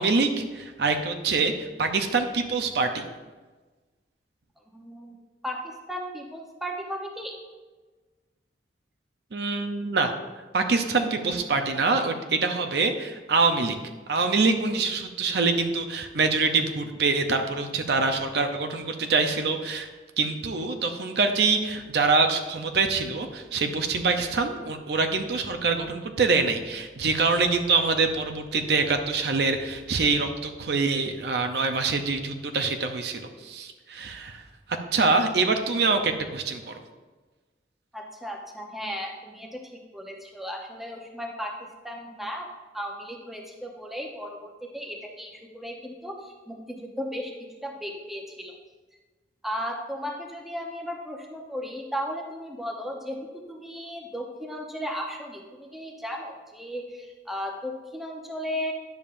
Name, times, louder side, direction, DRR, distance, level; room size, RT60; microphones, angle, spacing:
voice 1, 0.0-3.0 9.3-10.1 10.5-13.8 14.1-19.9 20.2-34.4 34.9-36.7, right 4 dB, 65° right, 5 dB, 0.6 m, -25 dB
voice 2, 4.7-5.2 5.4-7.3 37.9-39.6 39.9-41.6 41.8-42.5 42.7-47.3 47.6-48.5 49.4-58.7, equal, ahead, 0 dB, 0.8 m, -35 dB
10.5 x 7.0 x 2.5 m, 1.3 s
head